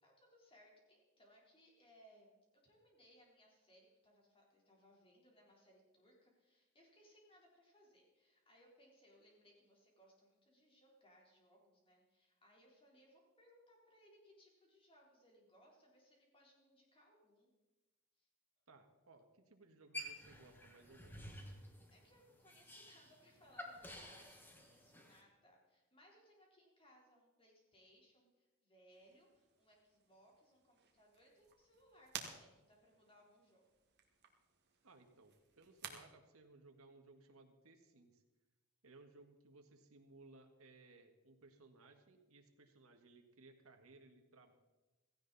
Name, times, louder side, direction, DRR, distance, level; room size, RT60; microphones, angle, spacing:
voice 1, 0.0-2.3 2.6-17.5 18.2-18.3 21.9-33.6, equal, 25° left, -2 dB, 3.9 m, -67 dB
voice 2, 18.7-21.5 34.8-38.2 38.8-44.5, right 3 dB, 70° right, 5 dB, 1.8 m, -63 dB
sound 1, 19.9-25.2, left 1 dB, 10° left, 1.5 m, -52 dB
sound 2, 28.9-35.9, right 7 dB, 50° right, 1.9 m, -55 dB
16.5 x 15.5 x 4.2 m, 1.1 s
head